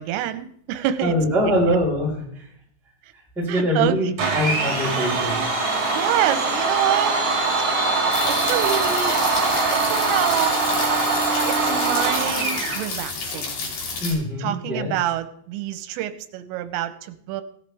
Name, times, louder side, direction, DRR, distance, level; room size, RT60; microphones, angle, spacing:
voice 1, 0.0-1.1 1.4-1.5 3.0-3.1 3.5-4.0 6.0-7.2 8.3-9.2 9.7-10.8 11.4-13.6 14.4-17.4, right 12 dB, 90° right, 11 dB, 3.5 m, -27 dB
voice 2, 1.0-2.5 3.4-5.5 14.0-14.9, equal, ahead, -4 dB, 3.6 m, -23 dB
Domestic sounds home sounds, 4.2-12.8, right 3 dB, 40° right, 4.1 m, -22 dB
sound 1, 8.1-14.1, left 4 dB, 50° left, 4.1 m, -30 dB
17.0 x 10.5 x 3.5 m, 0.66 s
omnidirectional pair, 5.7 m